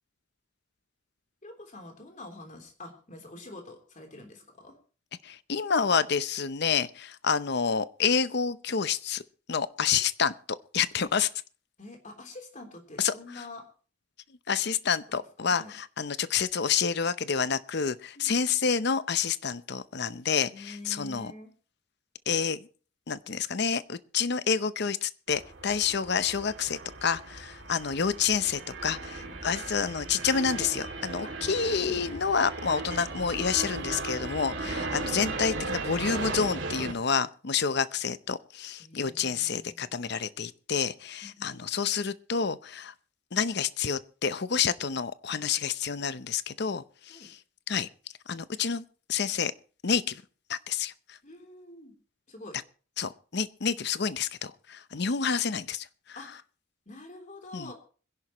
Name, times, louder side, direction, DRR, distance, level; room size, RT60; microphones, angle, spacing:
voice 1, 1.4-4.7 11.8-13.7 15.5-15.7 18.2-18.3 20.5-21.5 29.2-29.5 31.2-31.3 31.6-32.1 38.8-39.9 41.2-41.6 47.1-47.3 51.2-51.9 52.3-52.6 56.2-56.3 56.9-57.7, left 2 dB, 40° left, 3.4 m, -46 dB
voice 2, 5.2-9.2 9.5-10.3 10.7-11.3 13.0-13.4 14.5-21.3 22.3-22.7 23.1-42.9 43.3-47.4 47.7-47.9 48.3-48.8 49.1-49.5 49.8-50.2 50.5-51.2 53.0-55.9 57.5-57.7, left 6 dB, 55° left, 0.7 m, -29 dB
sound 1, 25.3-36.9, right 3 dB, 70° right, 2.6 m, -37 dB
25.5 x 11.0 x 3.1 m
head